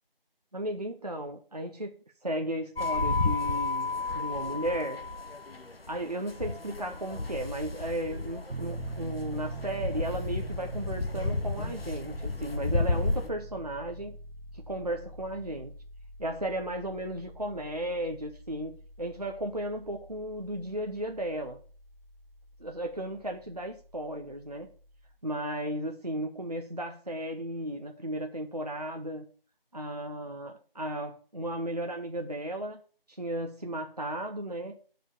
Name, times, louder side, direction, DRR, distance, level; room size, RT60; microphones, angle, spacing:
voice 1, 0.5-5.0 5.9-14.2 14.5-15.7 16.2-21.6 22.6-24.7 25.2-29.2 29.7-32.8 33.1-34.8, right 1 dB, 45° right, 4 dB, 0.8 m, -35 dB
sound 1, 2.8-13.3, left 3 dB, 75° left, 1.1 m, -32 dB
Piano, 8.5-25.2, right 2 dB, 90° right, 1.0 m, -45 dB
8.3 x 5.1 x 7.3 m, 0.41 s
figure-of-eight pair, 170°, 30 cm